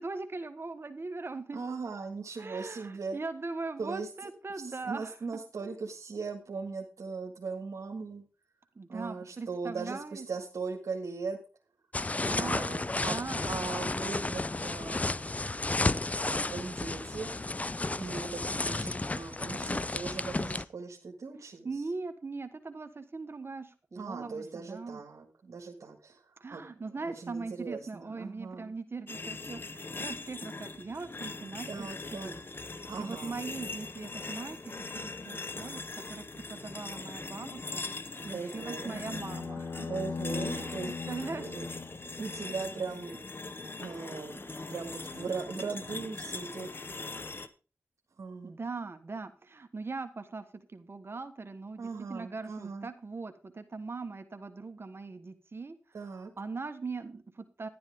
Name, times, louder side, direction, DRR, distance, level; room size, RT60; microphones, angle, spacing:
voice 1, 0.0-1.6 2.4-5.1 8.7-10.3 12.1-13.4 21.6-25.0 26.4-32.4 32.7-34.6 34.9-37.8 38.2-39.9 40.3-40.7 41.1-41.6 48.4-55.8 56.1-57.7, right 3 dB, 45° right, 9 dB, 1.3 m, -40 dB
voice 2, 1.5-3.2 3.8-4.1 4.6-8.3 8.9-11.4 12.2-15.5 16.1-17.3 18.0-21.7 23.9-28.7 31.7-32.3 32.8-33.4 38.3-39.0 39.9-40.9 41.3-41.7 42.2-43.2 43.8-46.7 48.2-48.5 51.8-52.9 55.9-56.3, right 4 dB, 75° right, 1 dB, 1.7 m, -39 dB
sound 1, 11.9-20.6, left 2 dB, 25° left, 0.5 m, -32 dB
sound 2, 29.1-47.5, left 3 dB, 45° left, 1.0 m, -41 dB
sound 3, 38.9-43.1, left 5 dB, 60° left, 0.7 m, -40 dB
11.5 x 10.5 x 3.6 m, 0.33 s
cardioid pair, 45°, 5 cm